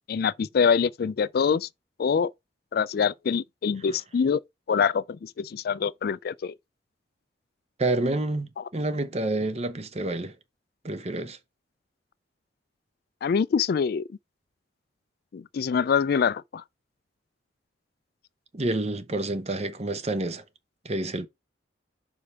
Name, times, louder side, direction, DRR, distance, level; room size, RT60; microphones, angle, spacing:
voice 1, 0.1-1.7 2.0-2.3 2.7-4.4 4.7-6.5 8.6-8.7 13.2-14.0 15.3-16.6, left 6 dB, 60° left, 0.3 m, -25 dB
voice 2, 7.8-10.3 10.8-11.4 18.5-20.4 20.8-21.3, right 2 dB, 35° right, 0.9 m, -28 dB
5.0 x 4.7 x 5.6 m
head